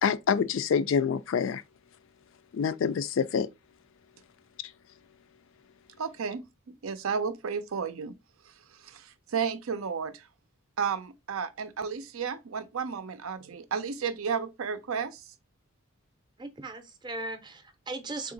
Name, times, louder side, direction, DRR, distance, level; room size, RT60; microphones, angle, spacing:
voice 1, 0.0-1.6 2.5-3.5, left 6 dB, 65° left, 0.3 m, -26 dB
voice 2, 6.0-6.4 6.8-8.1 9.3-10.1 10.8-15.1, right 6 dB, 80° right, 0.5 m, -32 dB
voice 3, 16.4-18.3, right 2 dB, 20° right, 0.5 m, -38 dB
3.7 x 2.8 x 3.8 m
head